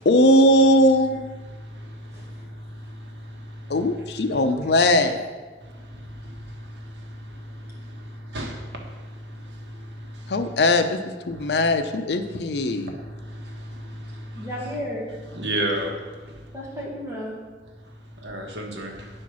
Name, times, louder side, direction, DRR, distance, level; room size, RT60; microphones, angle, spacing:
voice 1, 0.0-1.3 3.7-5.2 10.3-11.0 11.3-12.9, left 1 dB, 70° left, 8 dB, 0.6 m, -19 dB
voice 2, 2.9-3.5 6.0-7.0 7.3-9.0 9.3-10.3 11.3-11.4 13.1-14.5 15.3-15.9 18.2-19.1, right 1 dB, 85° right, 1 dB, 1.4 m, -34 dB
voice 3, 4.2-4.6 14.4-15.1 16.5-17.3, equal, 15° right, -4 dB, 1.9 m, -33 dB
9.3 x 4.4 x 6.2 m, 1.4 s
head